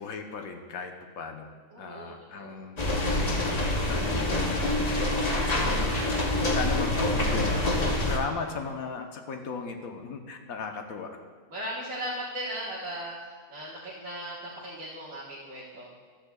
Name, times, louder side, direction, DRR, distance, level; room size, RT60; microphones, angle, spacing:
voice 1, 0.0-1.5 1.8-2.7 3.2-6.2 6.5-11.1, left 5 dB, 85° left, 4 dB, 1.4 m, -37 dB
voice 2, 1.7-2.6 11.5-13.1 13.5-15.9, right 1 dB, 70° right, -6 dB, 1.9 m, -38 dB
sound 1, 2.8-8.2, left 1 dB, 30° left, 1.0 m, -26 dB
14.5 x 11.5 x 2.3 m, 1.5 s
omnidirectional pair, 1.5 m